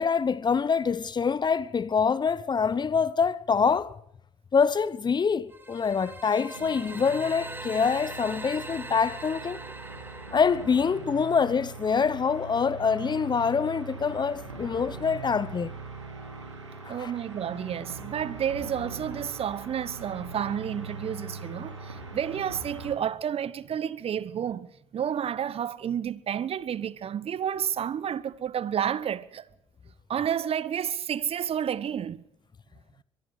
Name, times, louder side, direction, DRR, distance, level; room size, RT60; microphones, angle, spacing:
voice 1, 0.0-3.9 4.5-9.6 10.3-15.7 16.9-17.1, left 6 dB, 30° left, 1.0 m, -25 dB
sound 1, 5.5-11.4, right 2 dB, 15° right, 3.2 m, -42 dB
sound 2, 6.5-22.9, right 3 dB, 90° right, 3.4 m, -41 dB
voice 2, 16.9-29.5 30.1-32.2, right 9 dB, 40° right, 1.2 m, -30 dB
23.5 x 23.0 x 5.0 m
figure-of-eight pair, 55°, 15 cm